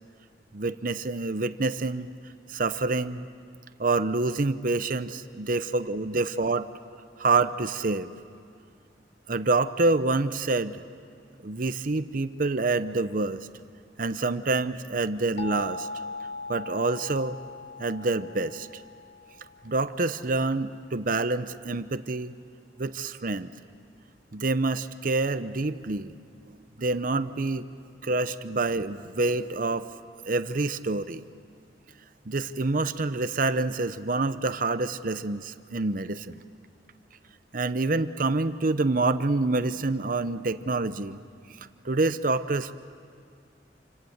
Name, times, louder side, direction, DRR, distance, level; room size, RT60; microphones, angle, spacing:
voice 1, 0.5-2.1 2.5-3.3 3.8-6.7 7.2-8.1 9.3-10.8 11.4-13.4 14.0-15.9 16.5-17.4 17.8-18.8 19.6-22.3 22.8-23.5 24.3-26.1 26.8-27.6 28.0-29.9 30.3-31.2 32.3-36.4 37.5-41.2 41.6-42.7, right 3 dB, 50° right, 11 dB, 0.8 m, -27 dB
sound 1, 15.4-20.1, left 3 dB, 65° left, 2.8 m, -40 dB
28.0 x 26.0 x 8.0 m, 2.3 s
head